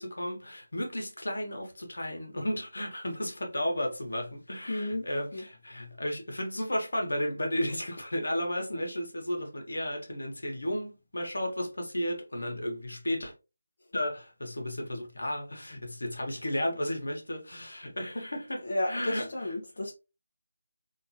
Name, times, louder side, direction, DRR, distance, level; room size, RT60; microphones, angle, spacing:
voice 1, 0.0-13.3 13.9-19.5, left 1 dB, 90° left, 1.1 m, -33 dB
voice 2, 4.7-5.4 18.6-19.9, left 1 dB, 55° left, 0.7 m, -33 dB
2.9 x 2.4 x 2.7 m
figure-of-eight pair, 170°, 0 cm